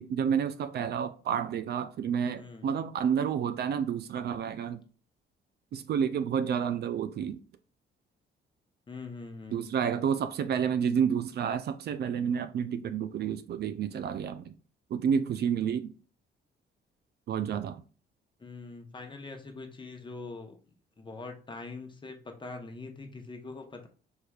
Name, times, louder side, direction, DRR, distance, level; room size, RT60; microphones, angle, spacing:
voice 1, 0.0-4.8 5.7-7.4 9.5-14.5 14.9-15.9 17.3-17.8, right 7 dB, 55° right, 0.4 m, -30 dB
voice 2, 2.4-2.7 8.9-9.7 18.4-23.9, left 3 dB, 25° left, 0.9 m, -43 dB
4.5 x 3.3 x 2.3 m
cardioid pair, 90°, 20 cm